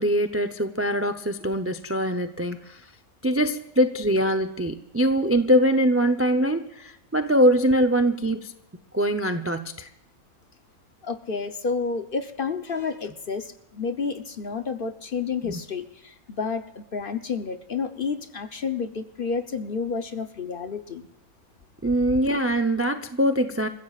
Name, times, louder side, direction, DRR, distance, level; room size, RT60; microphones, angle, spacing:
voice 1, 0.0-2.8 3.2-8.5 8.9-9.9 15.4-15.6 21.8-23.7, equal, 20° right, 9 dB, 0.3 m, -23 dB
voice 2, 11.0-21.1, left 5 dB, 45° left, 8 dB, 0.8 m, -30 dB
28.0 x 15.5 x 2.4 m, 0.90 s
omnidirectional pair, 1.5 m